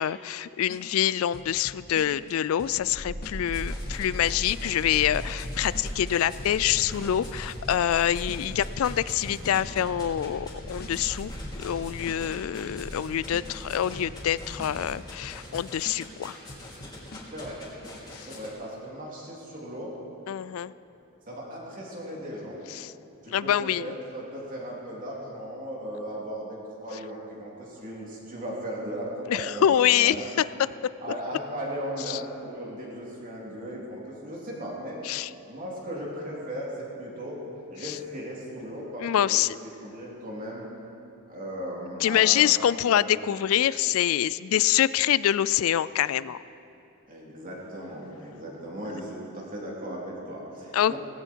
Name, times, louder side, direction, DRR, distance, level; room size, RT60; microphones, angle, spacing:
voice 1, 0.0-11.3 11.6-16.4 18.2-18.3 20.3-20.7 22.8-22.9 23.3-23.9 29.3-30.2 32.1-32.2 35.1-35.3 39.0-39.6 42.0-46.4 50.7-51.0, left 10 dB, 70° left, 17 dB, 0.3 m, -25 dB
sound 1, 0.7-1.1 1.3-2.3 2.6-2.9 3.2-3.6 3.9-4.2 4.5-4.8 5.1-6.1 6.4-8.0 8.3-8.6 8.9-9.3 9.5-9.9 10.2-10.5 10.8-11.2 11.4-12.4 12.7-13.1 13.3-13.7 14.0-14.3 14.6-14.9 15.2-16.2 16.5-17.7, left 2 dB, 45° left, 1.3 m, -45 dB
sound 2, 2.8-15.1 15.4-15.5, equal, 70° right, 4.7 m, -39 dB
sound 3, 3.4-18.5, left 2 dB, 20° left, 3.1 m, -45 dB
voice 2, 18.3-19.9 21.3-22.6 23.2-30.4 31.0-35.0 35.5-37.4 37.7-40.6 41.3-42.6 42.9-43.2 47.1-51.0, equal, 40° right, -4 dB, 3.3 m, -37 dB
18.5 x 16.0 x 4.6 m, 2.8 s
head